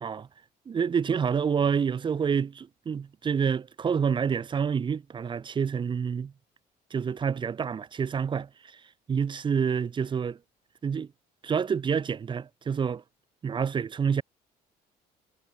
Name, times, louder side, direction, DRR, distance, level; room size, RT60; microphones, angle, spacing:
voice 1, 0.7-6.3 6.9-8.5 9.1-10.4 10.8-11.1 11.4-13.0 13.4-14.2, right 6 dB, 30° right, 0.6 m, -28 dB
cardioid pair, 110°, 17 cm